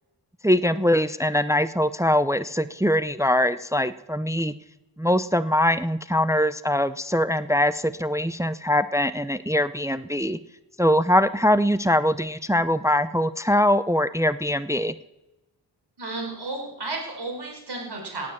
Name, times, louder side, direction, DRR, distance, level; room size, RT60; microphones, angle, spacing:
voice 1, 0.4-4.5 5.0-10.4 10.8-14.9, left 1 dB, 5° right, 14 dB, 0.6 m, -22 dB
voice 2, 16.0-18.3, right 2 dB, 60° right, 0 dB, 5.2 m, -33 dB
17.5 x 7.8 x 7.2 m, 0.98 s
cardioid pair, 55°, 44 cm